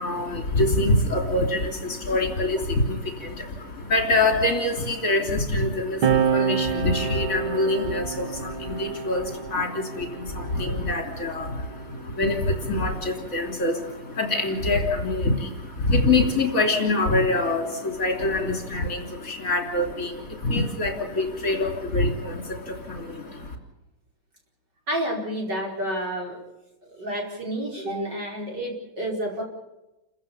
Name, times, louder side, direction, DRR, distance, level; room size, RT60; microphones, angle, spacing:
voice 1, 0.0-23.6, left 2 dB, 40° left, 3 dB, 3.8 m, -25 dB
sound 1, 6.0-12.9 13.9-15.8, right 7 dB, 75° right, 2.5 m, -30 dB
voice 2, 24.9-26.4 27.0-29.4, right 1 dB, 50° right, -1 dB, 5.5 m, -29 dB
29.5 x 15.0 x 7.0 m, 0.98 s
omnidirectional pair, 2.3 m